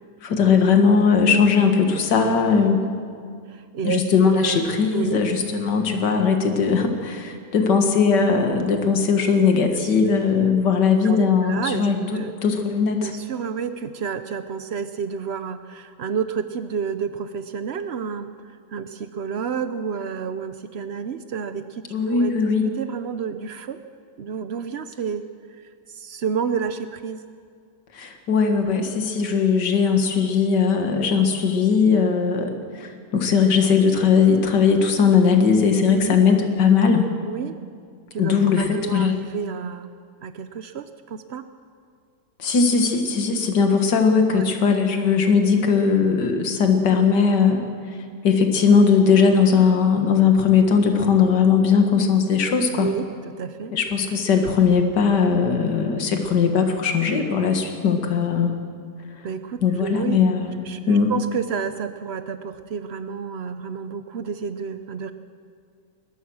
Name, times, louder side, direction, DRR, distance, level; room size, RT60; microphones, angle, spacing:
voice 1, 0.2-2.9 3.8-13.1 21.9-22.6 27.9-37.1 38.2-39.2 42.4-47.7 48.2-52.9 53.7-58.5 59.6-60.6 60.9-61.1, left 5 dB, 60° left, 5 dB, 2.3 m, -19 dB
voice 2, 3.5-4.0 4.3-4.6 4.9-5.2 9.7-9.9 11.0-11.9 12.1-12.3 13.0-22.4 22.6-23.8 24.2-25.2 25.5-27.2 35.9-36.2 37.2-37.6 38.1-39.9 40.2-41.4 44.3-44.6 52.8-53.7 59.2-60.2 60.6-65.1, right 6 dB, 85° right, 10 dB, 0.5 m, -30 dB
21.5 x 20.5 x 6.3 m, 2.2 s
omnidirectional pair, 2.1 m